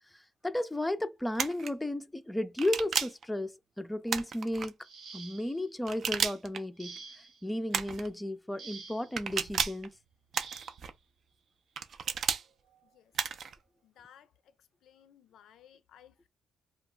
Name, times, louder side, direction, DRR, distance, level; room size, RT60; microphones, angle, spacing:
voice 1, 0.4-4.8 5.1-9.9, left 1 dB, 10° left, 0.4 m, -34 dB
sound 1, 1.3-1.7 2.6-3.2 4.1-4.7 5.8-6.6 7.7-8.1 9.2-9.9 10.3-10.9 11.8-12.4 13.1-13.5, right 6 dB, 55° right, 0.5 m, -32 dB
sound 2, 4.8-5.7 6.8-7.5 8.6-9.2 10.3-10.8 12.0-12.2 12.7-12.9, right 5 dB, 75° right, 1.2 m, -48 dB
voice 2, 13.8-14.3 14.8-16.3, left 9 dB, 80° left, 0.4 m, -58 dB
2.2 x 2.1 x 3.6 m
cardioid pair, 90°, 0 cm